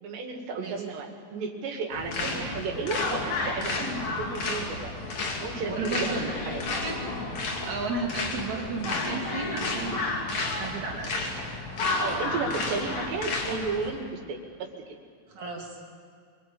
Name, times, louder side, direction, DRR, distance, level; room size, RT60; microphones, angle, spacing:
voice 1, 0.0-4.9 5.4-6.6 12.0-15.0, right 4 dB, 90° right, 3 dB, 4.5 m, -33 dB
sound 1, 1.9-13.9, left 3 dB, 45° left, 3.7 m, -31 dB
voice 2, 5.7-6.2 6.5-7.0 7.7-11.4 15.3-15.9, right 3 dB, 50° right, 0 dB, 3.6 m, -34 dB
25.5 x 23.5 x 8.6 m, 2.2 s
omnidirectional pair, 4.8 m